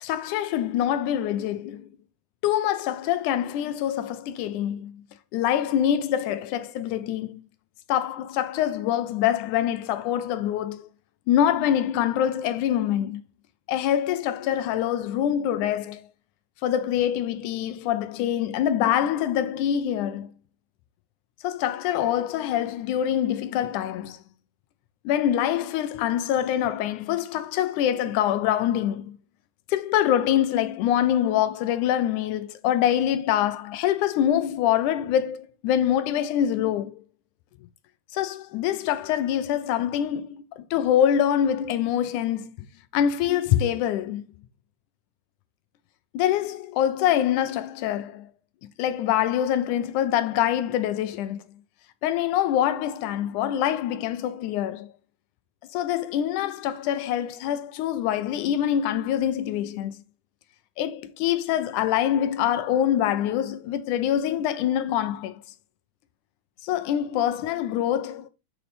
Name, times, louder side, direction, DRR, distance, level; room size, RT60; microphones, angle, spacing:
voice 1, 0.0-1.9 2.4-5.0 5.3-7.4 7.9-10.9 11.3-13.2 13.7-16.1 16.6-20.3 21.4-24.2 25.1-29.2 29.7-37.0 38.1-42.5 42.9-44.2 46.1-48.3 48.8-51.4 52.0-54.9 55.7-60.0 60.8-65.4 66.6-68.3, left 10 dB, 75° left, 1.9 m, -25 dB
7.0 x 6.9 x 3.3 m
omnidirectional pair, 4.0 m